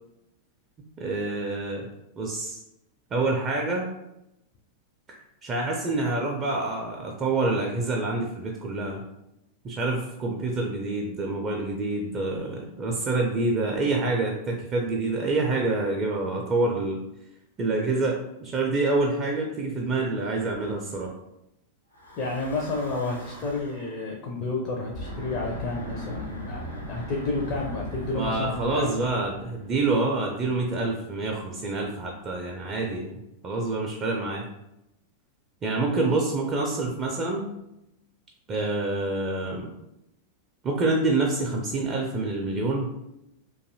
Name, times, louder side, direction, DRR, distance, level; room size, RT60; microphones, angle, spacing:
voice 1, 1.0-1.9 2.2-2.6 3.1-3.9 5.1-9.0 9.6-17.0 17.6-21.1 28.1-33.2 33.4-34.4 35.6-37.5 38.5-39.7 40.6-42.9, right 2 dB, 30° right, 0 dB, 0.4 m, -27 dB
Breathing / Wind, 21.9-23.9 24.8-30.2, equal, 90° left, 0.6 m, -39 dB
voice 2, 22.2-28.9 35.8-36.1, left 3 dB, 40° left, -1 dB, 0.4 m, -31 dB
2.6 x 2.3 x 2.6 m, 0.85 s
figure-of-eight pair, 90°, 0 cm